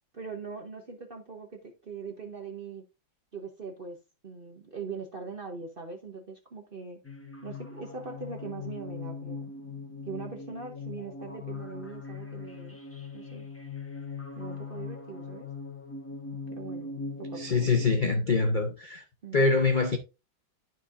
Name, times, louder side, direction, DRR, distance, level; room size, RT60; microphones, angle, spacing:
voice 1, 0.1-2.8 3.3-4.0 4.2-7.0 7.4-9.5 10.0-12.8 13.1-13.5 14.3-15.5 16.5-17.7 19.2-19.4, right 5 dB, 45° right, 0.7 m, -41 dB
sound 1, 7.0-17.9, left 4 dB, 10° left, 0.7 m, -40 dB
voice 2, 17.4-19.0 19.3-20.0, left 4 dB, 75° left, 0.4 m, -24 dB
12.5 x 4.5 x 2.5 m
omnidirectional pair, 2.1 m